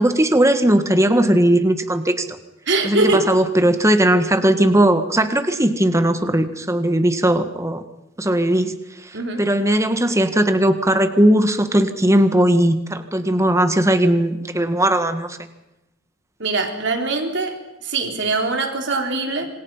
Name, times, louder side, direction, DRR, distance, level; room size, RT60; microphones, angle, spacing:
voice 1, 0.0-2.4 2.8-7.8 8.2-8.8 9.0-15.4, right 1 dB, 15° right, 9 dB, 1.7 m, -18 dB
voice 2, 2.7-3.3 9.1-9.5 16.4-19.5, right 3 dB, 65° right, 4 dB, 4.0 m, -22 dB
27.0 x 27.0 x 5.7 m, 0.91 s
head